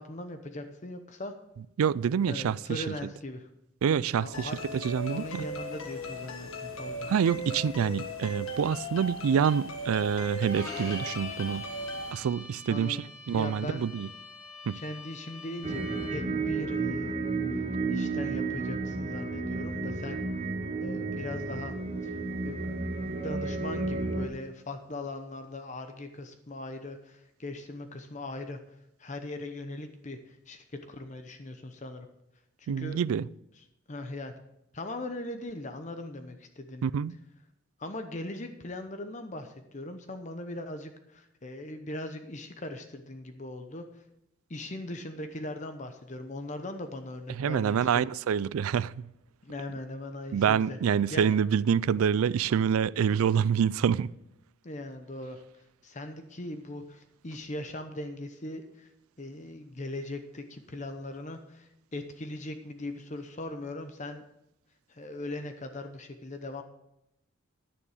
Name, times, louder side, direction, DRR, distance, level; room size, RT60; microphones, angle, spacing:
voice 1, 0.0-1.3 2.3-3.5 4.2-4.6 5.1-7.1 12.7-13.0 13.3-14.0 14.7-15.8 16.1-17.1 17.9-20.2 20.8-21.8 22.0-22.1 22.4-22.5 23.2-28.6 29.0-32.1 32.6-33.0 33.9-34.3 34.7-36.9 37.8-44.0 44.5-48.1 49.4-50.8 51.1-51.4 54.6-58.9 59.2-64.2 64.9-66.6, left 1 dB, 35° left, 0.8 m, -39 dB
voice 2, 1.8-2.9 3.8-5.5 7.1-11.7 12.1-14.1 14.7-14.8 32.7-33.3 36.8-37.1 47.3-49.1 50.3-54.1, right 7 dB, 90° right, 0.3 m, -27 dB
sound 1, 4.3-12.1, left 1 dB, 80° left, 1.6 m, -38 dB
Bowed string instrument, 10.5-16.3, left 2 dB, 15° left, 4.1 m, -44 dB
sound 2, 15.6-24.3, right 3 dB, 30° right, 1.0 m, -32 dB
11.0 x 9.7 x 4.9 m
head